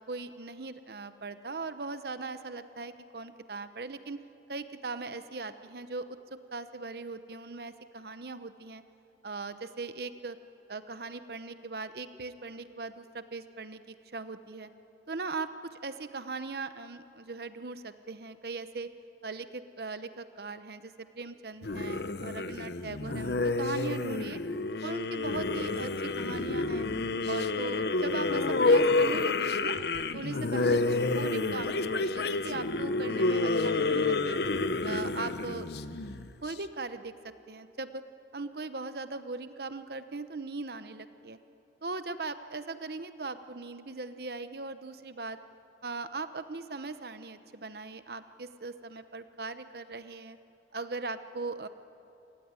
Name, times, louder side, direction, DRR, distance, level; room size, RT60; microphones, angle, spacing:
voice 1, 0.0-4.2 4.5-6.2 6.5-8.8 9.2-10.4 10.7-14.7 15.1-18.9 19.2-24.4 24.8-26.9 27.3-29.8 30.1-34.4 34.8-35.7 36.4-38.0 38.3-41.4 41.8-45.4 45.8-50.4 50.7-51.7, right 3 dB, 60° right, 11 dB, 0.9 m, -39 dB
sound 1, 21.6-36.5, left 3 dB, 65° left, 0.8 m, -29 dB
28.0 x 18.5 x 9.7 m, 2.8 s
head